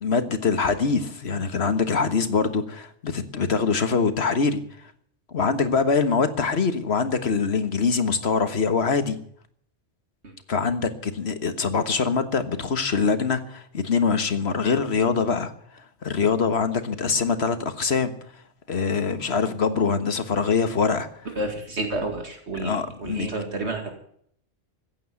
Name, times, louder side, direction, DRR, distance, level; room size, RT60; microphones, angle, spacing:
voice 1, 0.0-4.6 5.3-9.2 10.5-15.5 16.0-18.1 18.7-21.1 22.6-23.3, left 5 dB, 65° left, 10 dB, 1.7 m, -23 dB
voice 2, 21.4-23.9, right 2 dB, 75° right, 4 dB, 2.4 m, -30 dB
15.5 x 9.4 x 9.4 m, 0.64 s
omnidirectional pair, 1.2 m